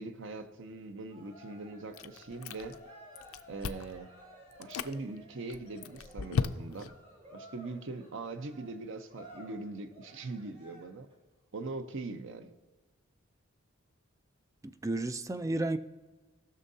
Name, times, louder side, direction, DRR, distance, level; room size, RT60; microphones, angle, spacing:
voice 1, 0.0-2.8 3.5-4.1 4.6-6.9 7.3-11.1 11.5-12.6, right 3 dB, 65° right, 0.7 m, -41 dB
Cheering, 1.1-11.1, equal, 30° right, 3.1 m, -54 dB
Chewing mastication, 1.9-2.9 3.1-4.0 4.5-4.9 5.5-6.9, left 5 dB, 90° left, 0.5 m, -35 dB
voice 2, 14.6-15.8, right 2 dB, 15° right, 0.4 m, -32 dB
17.5 x 6.4 x 2.7 m
head